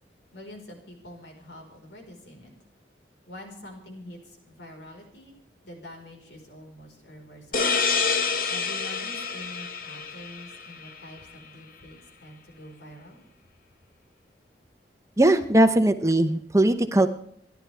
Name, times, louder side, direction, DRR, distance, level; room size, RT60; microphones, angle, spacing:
voice 1, 0.3-2.5 3.3-5.4 5.6-7.8 8.5-13.2, left 1 dB, 75° left, 2 dB, 4.7 m, -45 dB
sound 1, 7.5-11.0, left 5 dB, 50° left, 1.4 m, -27 dB
voice 2, 15.2-17.1, right 1 dB, 15° right, 8 dB, 0.9 m, -19 dB
29.5 x 11.5 x 3.5 m, 0.68 s
head